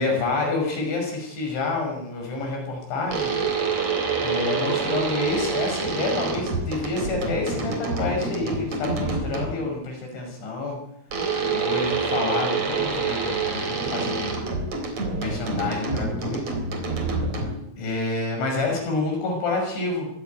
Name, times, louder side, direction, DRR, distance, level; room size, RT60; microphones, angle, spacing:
voice 1, 0.0-3.3 4.2-10.8 11.5-14.5 15.1-16.4 17.8-20.1, left 3 dB, 65° left, 2 dB, 8.3 m, -28 dB
sound 1, 3.1-9.7 11.1-17.8, right 4 dB, 35° right, 4.5 m, -27 dB
25.0 x 15.5 x 9.5 m, 0.76 s
omnidirectional pair, 5.6 m